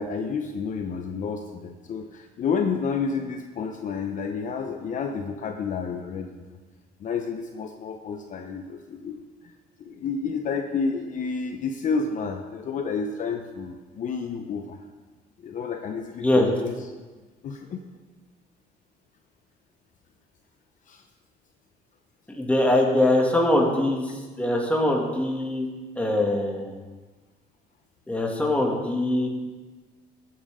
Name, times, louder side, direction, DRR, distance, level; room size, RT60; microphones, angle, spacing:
voice 1, 0.0-6.6 7.0-9.5 9.8-14.8 15.4-16.9 17.4-17.8 20.9-21.0, left 5 dB, 50° left, 4 dB, 0.8 m, -30 dB
voice 2, 22.3-24.0 24.4-25.7 26.0-26.7 28.1-29.3, left 1 dB, 10° left, -1 dB, 2.3 m, -22 dB
16.0 x 8.8 x 3.7 m, 1.3 s
cardioid pair, 110°, 17 cm